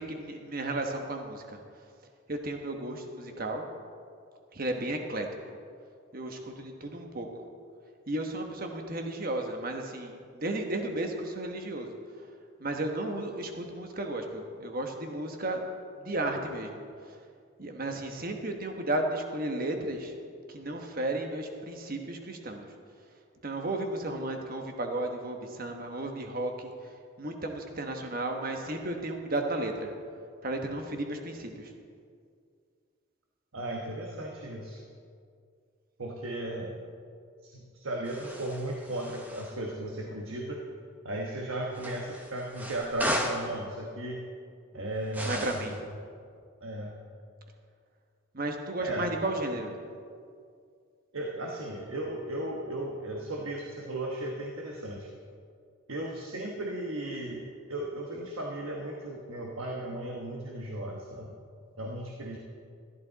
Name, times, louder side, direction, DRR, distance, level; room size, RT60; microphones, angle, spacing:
voice 1, 0.0-1.6 2.3-3.6 4.5-5.3 6.1-7.3 8.1-12.0 12.6-15.6 16.0-16.8 17.6-20.1 20.5-22.6 23.4-26.7 27.2-29.9 30.4-31.7 45.2-45.7 48.3-49.8, right 1 dB, 45° right, 3 dB, 1.2 m, -34 dB
voice 2, 33.5-34.8 36.0-36.8 37.4-40.6 41.0-44.2 44.7-45.7 46.6-47.0 48.8-49.1 51.1-55.1 55.9-61.4 61.8-62.4, right 1 dB, 75° right, 0 dB, 1.2 m, -36 dB
sound 1, 38.0-39.6 41.7-43.5 45.1-45.8, equal, 10° right, 0.9 m, -36 dB
13.5 x 12.0 x 4.0 m, 2.2 s
head